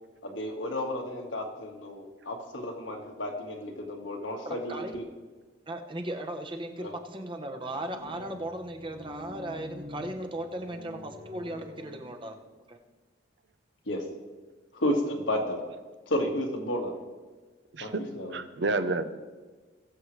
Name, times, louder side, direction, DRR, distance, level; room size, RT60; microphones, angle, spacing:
voice 1, 0.2-5.0 6.8-6.9 13.9-14.0 14.7-15.6 16.1-17.0 17.8-18.4, left 1 dB, 80° left, 1 dB, 1.8 m, -32 dB
voice 2, 4.4-5.0 5.7-12.4 12.7-12.8, right 1 dB, 25° right, 5 dB, 0.9 m, -37 dB
sound 1, 7.6-12.5, left 1 dB, 80° right, 4.3 m, -47 dB
voice 3, 17.7-18.0 18.3-19.0, right 3 dB, 60° right, 10 dB, 0.7 m, -29 dB
21.0 x 7.4 x 3.3 m, 1.4 s
head